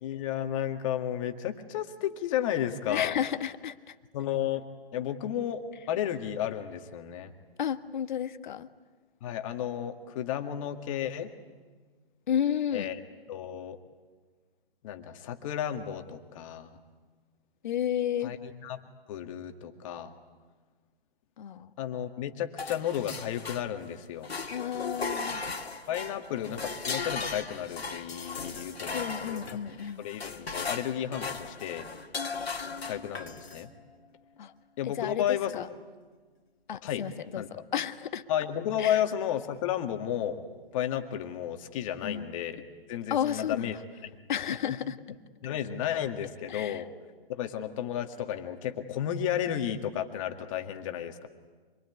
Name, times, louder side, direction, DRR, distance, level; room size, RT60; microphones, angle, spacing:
voice 1, 0.0-3.2 4.1-4.7 4.9-7.3 9.2-11.3 12.7-13.0 13.3-13.8 14.8-16.7 18.2-18.8 19.1-20.1 21.8-24.3 25.9-29.6 30.0-31.9 32.9-33.7 34.8-35.6 36.8-37.1 37.4-37.5 38.3-40.4 40.7-42.6 42.9-43.8 45.4-46.9 47.3-51.3, left 10 dB, 35° left, 6 dB, 1.9 m, -32 dB
voice 2, 2.9-3.9 7.6-8.7 12.3-12.9 17.6-18.3 21.4-21.7 24.5-25.4 28.9-30.0 34.4-34.5 34.8-35.7 36.7-37.4 37.7-38.2 38.8-39.0 42.0-42.3 43.1-43.7 44.3-45.0 46.5-46.8, left 9 dB, 50° left, 11 dB, 1.3 m, -32 dB
sound 1, 22.6-23.9 24.2-33.7, left 4 dB, 80° left, 2.1 m, -37 dB
26.0 x 22.5 x 9.8 m, 1.4 s
hypercardioid pair, 140°, 31 cm